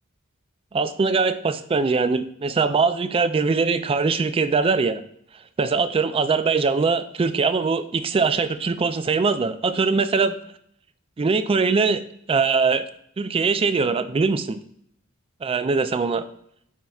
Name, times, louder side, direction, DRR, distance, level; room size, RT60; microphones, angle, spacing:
voice 1, 0.7-5.0 5.6-10.4 11.2-12.0 12.3-12.8 13.2-14.6 15.4-16.2, right 4 dB, 25° right, 11 dB, 0.3 m, -22 dB
9.3 x 4.4 x 2.4 m, 0.70 s
head